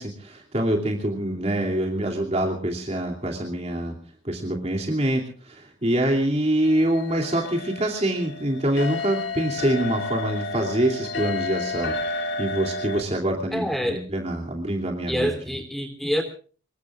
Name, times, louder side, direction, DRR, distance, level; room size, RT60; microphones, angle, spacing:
voice 1, 0.0-3.9 4.2-15.4, right 1 dB, 30° right, 1 dB, 2.8 m, -25 dB
sound 1, 6.6-13.0, left 3 dB, 60° left, 3.5 m, -31 dB
voice 2, 13.5-14.0 15.1-16.2, equal, ahead, 6 dB, 3.3 m, -26 dB
26.0 x 22.5 x 2.5 m, 0.40 s
head